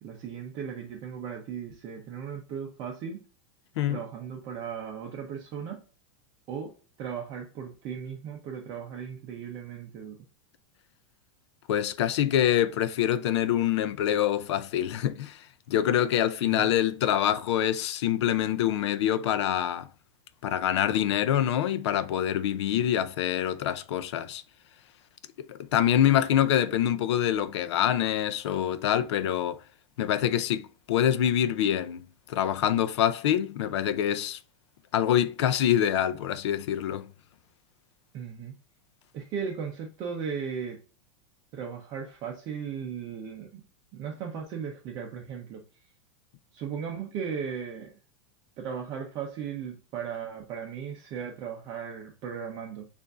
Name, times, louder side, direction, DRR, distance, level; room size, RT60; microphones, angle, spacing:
voice 1, 0.0-3.2 3.9-5.8 6.5-10.2 16.4-16.7 38.1-38.5 39.1-40.8 41.5-43.6 43.9-45.6 46.5-47.9 48.6-52.9, right 7 dB, 25° right, 0.6 m, -37 dB
voice 2, 11.7-19.9 20.4-24.4 25.5-29.6 30.0-34.4 34.9-37.1, left 10 dB, 70° left, 0.5 m, -25 dB
6.8 x 2.6 x 2.4 m
supercardioid pair, 180°, 15 cm